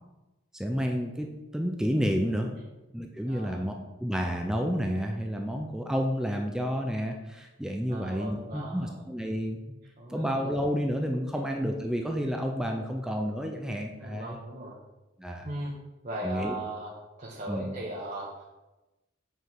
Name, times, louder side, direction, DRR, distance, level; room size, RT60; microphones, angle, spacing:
voice 1, 0.5-1.3 1.5-2.5 2.9-3.7 4.0-9.6 10.1-14.4 15.2-15.5 16.2-16.5 17.5-17.7, equal, 5° right, 2 dB, 0.6 m, -30 dB
voice 2, 3.3-3.6 7.9-9.0 10.0-10.3 11.3-11.4 14.0-14.8 15.4-15.7 16.0-16.9 17.2-18.4, right 1 dB, 40° right, -5 dB, 1.5 m, -38 dB
7.9 x 5.2 x 6.1 m, 1.0 s
head